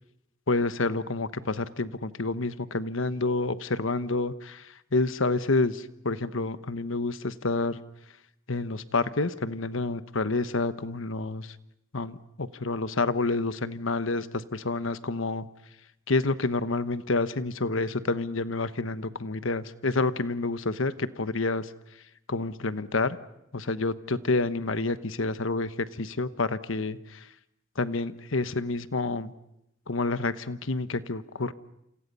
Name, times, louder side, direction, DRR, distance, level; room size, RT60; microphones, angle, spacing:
voice 1, 0.5-7.8 8.5-11.5 11.9-15.5 16.1-21.7 22.3-23.2 23.5-27.2 27.8-29.3 29.9-31.5, left 3 dB, 75° left, 13 dB, 1.1 m, -28 dB
29.0 x 28.5 x 5.5 m, 0.81 s
head